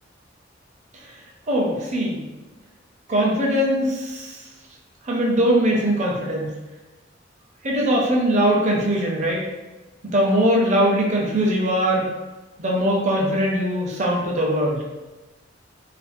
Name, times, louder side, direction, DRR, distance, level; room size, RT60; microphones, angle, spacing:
voice 1, 1.5-2.2 3.1-4.4 5.0-6.5 7.6-9.4 10.1-12.1 12.6-14.8, equal, 40° right, -2 dB, 0.6 m, -21 dB
2.5 x 2.3 x 2.5 m, 1.1 s
head